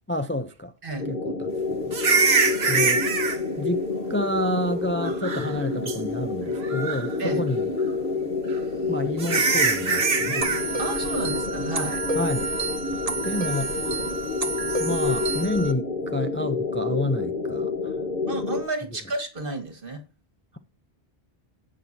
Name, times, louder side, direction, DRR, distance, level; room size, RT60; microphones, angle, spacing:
voice 1, 0.1-0.7 1.1-2.0 2.7-3.1 3.6-7.7 8.9-10.5 12.1-12.5 13.2-14.0 14.8-18.0, left 1 dB, 15° left, 0.5 m, -29 dB
sound 1, 1.0-18.6, left 4 dB, 55° left, 1.3 m, -29 dB
sound 2, 1.9-3.4 5.0-5.6 5.9-6.0 6.6-7.1 8.5-8.6 9.2-10.6 14.7-14.9, right 4 dB, 80° right, 1.5 m, -23 dB
sound 3, 10.4-15.7, right 3 dB, 40° right, 1.1 m, -30 dB
voice 2, 10.8-12.0 18.3-20.0, right 2 dB, 60° right, 2.0 m, -31 dB
17.0 x 6.1 x 2.8 m
omnidirectional pair, 1.0 m